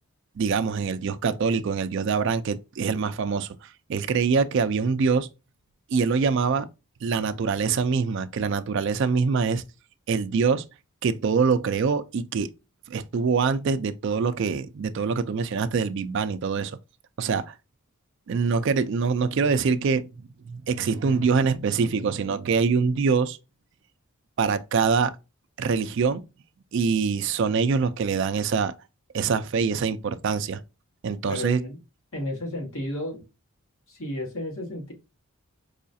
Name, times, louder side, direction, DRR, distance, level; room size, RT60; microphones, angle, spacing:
voice 1, 0.4-5.3 5.9-6.7 7.0-9.6 10.1-10.6 11.0-12.5 12.9-16.8 17.2-17.5 18.3-20.1 20.4-23.4 24.4-25.1 25.6-26.2 26.7-28.7 29.1-30.6 31.0-31.6, right 5 dB, 55° right, 0.3 m, -24 dB
voice 2, 31.3-31.8 32.1-33.2 33.9-34.9, left 1 dB, 65° left, 1.3 m, -32 dB
4.8 x 2.3 x 2.6 m
head